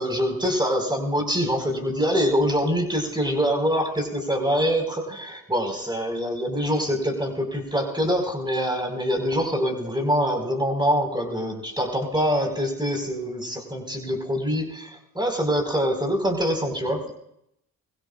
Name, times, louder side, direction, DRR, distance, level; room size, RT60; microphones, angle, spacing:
voice 1, 0.0-17.1, equal, 10° right, 3 dB, 5.0 m, -25 dB
22.5 x 16.0 x 2.5 m, 0.75 s
supercardioid pair, 55°, 37 cm